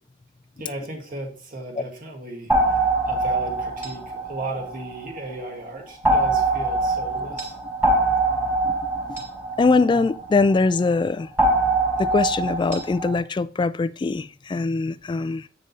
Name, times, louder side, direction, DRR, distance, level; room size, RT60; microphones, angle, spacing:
voice 1, 0.6-2.5 3.1-7.6, right 2 dB, 50° right, 1.8 m, -35 dB
sound 1, 2.5-5.3 6.0-10.6 11.4-13.2, right 2 dB, 10° right, 3.3 m, -23 dB
voice 2, 9.6-11.3 12.0-15.5, left 3 dB, 25° left, 0.3 m, -22 dB
8.9 x 5.2 x 4.1 m
head